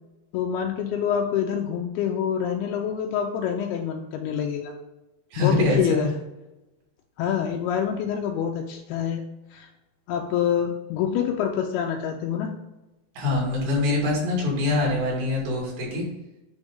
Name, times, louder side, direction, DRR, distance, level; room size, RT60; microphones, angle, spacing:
voice 1, 0.3-4.7 5.4-6.1 7.2-9.2 9.5-9.7 10.1-12.5, left 8 dB, 90° left, 3 dB, 2.3 m, -26 dB
voice 2, 5.3-6.1 13.2-16.0, left 2 dB, 70° right, -3 dB, 4.6 m, -24 dB
9.9 x 3.6 x 5.2 m, 0.99 s
omnidirectional pair, 5.1 m